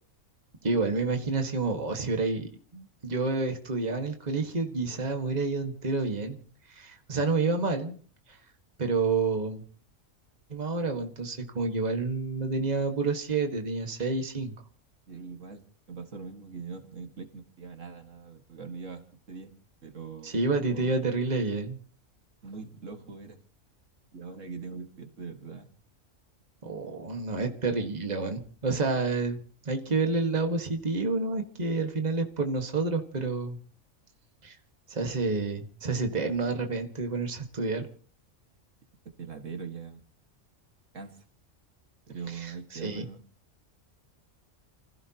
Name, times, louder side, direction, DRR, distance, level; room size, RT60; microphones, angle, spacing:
voice 1, 0.6-6.4 6.7-8.0 8.8-9.6 10.5-14.5 20.2-21.8 26.6-33.6 34.4-34.6 34.9-37.9 42.3-43.1, right 3 dB, 30° right, 4 dB, 1.8 m, -29 dB
voice 2, 15.1-19.5 19.8-20.9 22.4-23.4 24.1-25.7 39.2-40.0 40.9-41.2 42.1-43.2, right 5 dB, 70° right, 5 dB, 2.3 m, -42 dB
29.5 x 16.0 x 3.0 m, 0.42 s
omnidirectional pair, 1.3 m